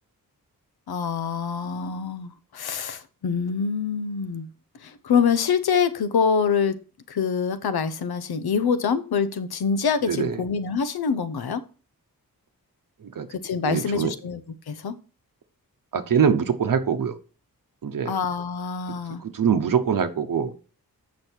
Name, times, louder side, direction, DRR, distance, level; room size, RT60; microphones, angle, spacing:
voice 1, 0.9-4.5 4.8-6.8 7.1-11.6 13.3-14.4 14.7-15.0 18.0-19.2, left 6 dB, 90° left, 0.9 m, -25 dB
voice 2, 10.1-10.4 13.0-13.3 13.6-14.1 15.9-17.2 17.8-18.1 18.9-20.5, right 7 dB, 60° right, 0.9 m, -24 dB
8.3 x 6.3 x 4.5 m
wide cardioid pair, 170°, 37 cm